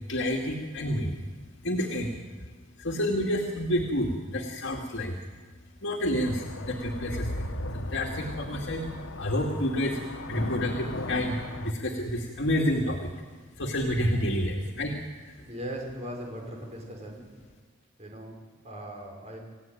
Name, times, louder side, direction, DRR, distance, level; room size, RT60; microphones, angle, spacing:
voice 1, 0.1-1.3 1.6-2.2 2.8-5.2 5.8-7.5 7.7-8.9 9.2-10.0 10.3-13.1 13.6-15.4, equal, 65° left, 0 dB, 2.4 m, -29 dB
sound 1, 6.2-11.7, left 1 dB, 85° left, 1.5 m, -37 dB
voice 2, 15.4-17.3 18.0-19.4, equal, 35° right, 1 dB, 5.3 m, -39 dB
28.5 x 16.5 x 9.2 m, 1.4 s
head